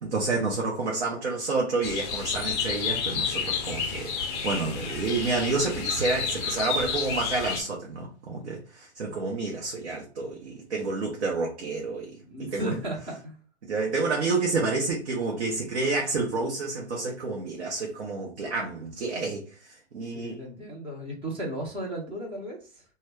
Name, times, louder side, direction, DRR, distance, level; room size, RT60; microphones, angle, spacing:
voice 1, 0.0-4.1 4.4-12.1 12.4-12.8 13.6-19.4 19.9-20.4, right 3 dB, 70° right, 0.8 m, -29 dB
sound 1, 1.8-7.6, left 6 dB, 25° left, 0.5 m, -30 dB
voice 2, 12.2-13.4 20.1-22.8, right 1 dB, 15° right, 0.7 m, -35 dB
2.2 x 2.1 x 3.3 m
hypercardioid pair, 125°, 34 cm